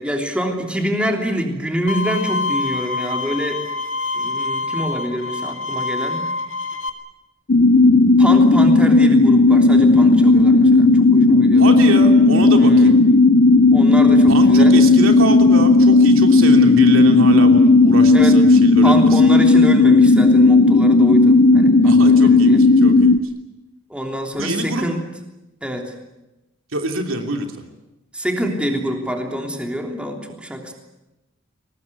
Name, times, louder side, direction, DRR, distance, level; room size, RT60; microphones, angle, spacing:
voice 1, 0.0-3.6 4.1-6.3 8.2-11.8 12.6-13.0 13.7-14.8 18.1-18.4 18.8-22.7 23.9-25.0 25.6-25.9 28.1-30.7, equal, 5° right, 2 dB, 3.2 m, -26 dB
Bowed string instrument, 1.9-6.9, left 3 dB, 70° left, 2.4 m, -26 dB
sound 1, 7.5-23.2, left 3 dB, 45° left, 0.8 m, -12 dB
voice 2, 11.6-13.0 14.3-19.2 21.8-23.2 24.4-24.8 26.7-27.5, right 2 dB, 75° right, 4 dB, 3.1 m, -25 dB
23.0 x 19.0 x 9.8 m, 0.97 s
head